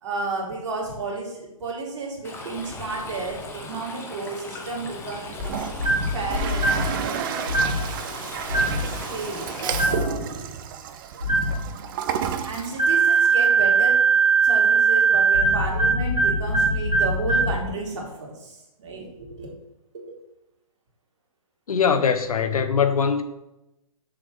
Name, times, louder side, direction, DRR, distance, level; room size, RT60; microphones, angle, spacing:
voice 1, 0.0-5.4 6.1-7.8 8.5-10.4 12.4-14.0 14.4-19.5 19.9-20.1, right 3 dB, 55° right, 2.6 m, -32 dB
Stream, 2.2-9.9, left 3 dB, 15° left, 1.0 m, -36 dB
Toilet flush, 5.3-13.5, right 8 dB, 35° right, 0.6 m, -32 dB
sound 1, 5.8-6.2 6.5-6.9 7.5-7.8 8.5-8.9 9.7-10.1 11.2-11.6 12.8-17.6, right 4 dB, 85° right, 2.0 m, -20 dB
voice 2, 21.7-23.2, left 6 dB, 75° left, 0.9 m, -21 dB
6.7 x 3.5 x 6.2 m
figure-of-eight pair, 130°, 19 cm